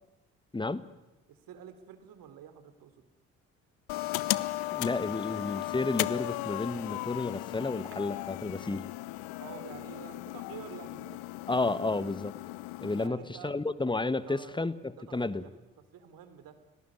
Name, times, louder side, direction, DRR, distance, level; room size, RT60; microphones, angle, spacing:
voice 1, 0.5-0.9 4.7-8.8 11.5-12.3 12.8-15.4, left 3 dB, 10° left, 16 dB, 1.4 m, -32 dB
voice 2, 1.3-3.0 9.4-11.2 13.0-13.6 14.2-14.6 15.0-15.5 15.9-16.6, right 9 dB, 55° right, 11 dB, 3.2 m, -48 dB
sound 1, 3.9-13.1, left 19 dB, 60° left, 0.9 m, -36 dB
sound 2, 7.9-8.1 8.5-8.6 9.1-9.2 9.7-10.6 10.9-11.0 11.5-11.8 12.1-12.2 12.7-12.9 13.3-14.2 14.5-14.6, right 4 dB, 30° right, 4.8 m, -60 dB
29.5 x 18.5 x 9.5 m, 1.1 s
figure-of-eight pair, 50°, 41 cm